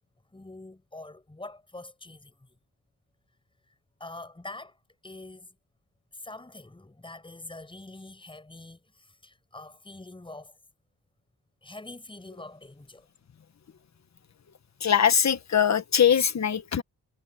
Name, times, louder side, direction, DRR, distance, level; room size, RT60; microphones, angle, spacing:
voice 1, 0.3-2.6 4.0-4.8 5.0-5.5 6.1-10.6 11.6-13.1, left 2 dB, 15° left, 7.4 m, -44 dB
voice 2, 14.8-16.8, left 8 dB, 45° left, 1.3 m, -22 dB
wide cardioid pair, 180°, 39 cm